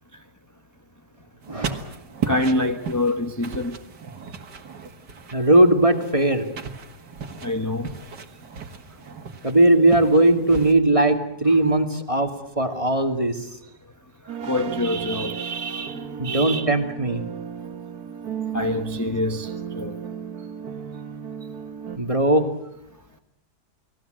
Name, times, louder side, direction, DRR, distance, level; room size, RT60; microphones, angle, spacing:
sound 1, 1.4-10.7, right 6 dB, 90° right, 2.4 m, -36 dB
voice 1, 1.5-1.9 5.3-6.5 9.4-12.3 12.6-13.4 16.2-17.2 22.0-22.5, right 1 dB, 20° right, 2.2 m, -19 dB
voice 2, 2.3-3.8 7.4-7.9 14.4-16.7 18.5-19.5 19.8-20.0, left 1 dB, 10° left, 1.1 m, -26 dB
sound 2, 14.3-22.0, right 8 dB, 65° right, 1.7 m, -34 dB
29.5 x 20.0 x 7.8 m
omnidirectional pair, 1.7 m